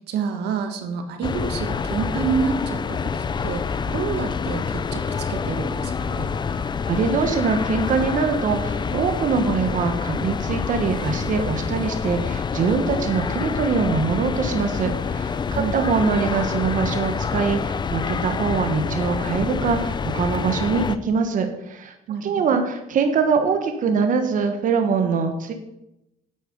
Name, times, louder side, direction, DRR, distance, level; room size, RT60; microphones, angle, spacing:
voice 1, 0.0-6.3 15.5-15.7 22.1-22.4, right 6 dB, 80° right, 6 dB, 1.4 m, -28 dB
sound 1, 1.2-21.0, left 6 dB, 25° left, 0.5 m, -27 dB
voice 2, 6.6-21.9 22.2-25.5, right 5 dB, 50° right, 6 dB, 1.3 m, -23 dB
8.6 x 8.5 x 5.3 m, 0.87 s
cardioid pair, 110°, 17 cm